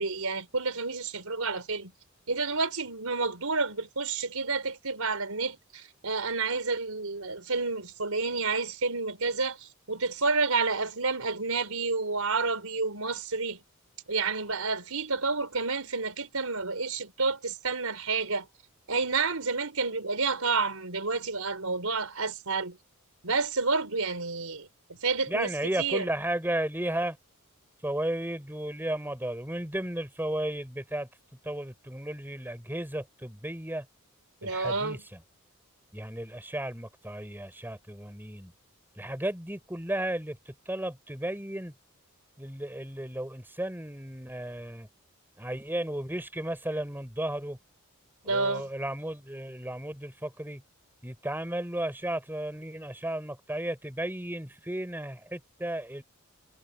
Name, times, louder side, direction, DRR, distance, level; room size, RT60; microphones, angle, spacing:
voice 1, 0.0-1.9 2.3-13.6 14.1-18.5 18.9-22.8 23.2-24.7 25.0-25.5 25.8-26.0 34.4-35.0 48.2-48.7, right 4 dB, 85° right, 4.2 m, -29 dB
voice 2, 25.3-27.2 27.8-31.1 31.4-33.9 34.4-35.2 35.9-38.5 39.0-41.7 42.4-44.9 45.4-47.6 48.2-50.6 51.0-56.0, right 1 dB, 10° right, 6.0 m, -34 dB
head